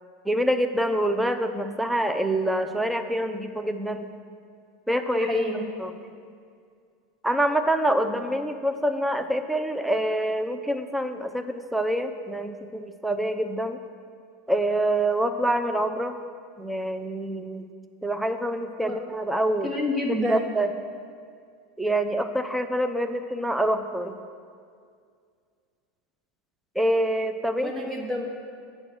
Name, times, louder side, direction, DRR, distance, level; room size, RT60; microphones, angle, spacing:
voice 1, 0.2-4.1 4.9-5.3 5.8-5.9 7.2-13.8 14.5-16.1 16.6-17.7 18.0-19.7 20.3-20.7 21.8-24.2 26.7-27.7, right 1 dB, 5° right, 8 dB, 0.6 m, -26 dB
voice 2, 5.2-5.7 18.8-18.9 19.6-20.4 27.6-28.2, left 1 dB, 20° right, 0 dB, 1.3 m, -27 dB
8.7 x 5.4 x 6.2 m, 2.2 s
hypercardioid pair, 85°, 0 cm